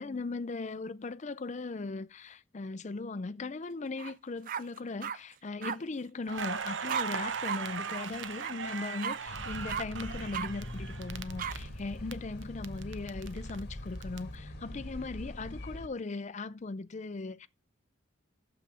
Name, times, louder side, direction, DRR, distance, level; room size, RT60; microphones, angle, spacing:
voice 1, 0.0-17.5, left 3 dB, 40° left, 0.5 m, -38 dB
sound 1, 4.0-4.1 4.5-5.2 5.6-5.8 6.9-7.1 7.4-7.6 7.9-8.0 8.4-8.5 9.0-9.2 9.7-9.8 10.3-10.5 11.4-11.5, right 8 dB, 45° right, 0.4 m, -35 dB
Crackle, 6.3-12.1 12.4-14.2, right 6 dB, 75° right, 0.7 m, -39 dB
sound 2, 9.3-15.9, left 1 dB, 55° left, 1.5 m, -42 dB
7.0 x 5.7 x 7.4 m
head